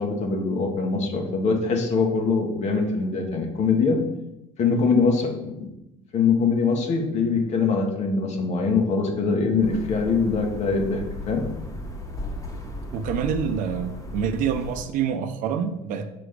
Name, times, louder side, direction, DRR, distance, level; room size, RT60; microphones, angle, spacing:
voice 1, 0.0-4.0 4.6-5.7 6.1-11.5, left 4 dB, 45° left, 2 dB, 1.2 m, -23 dB
sound 1, 9.6-14.8, left 2 dB, 20° left, 1.3 m, -35 dB
voice 2, 12.9-16.1, right 7 dB, 60° right, 7 dB, 0.6 m, -26 dB
6.0 x 3.3 x 5.1 m, 0.88 s
cardioid pair, 110°, 15 cm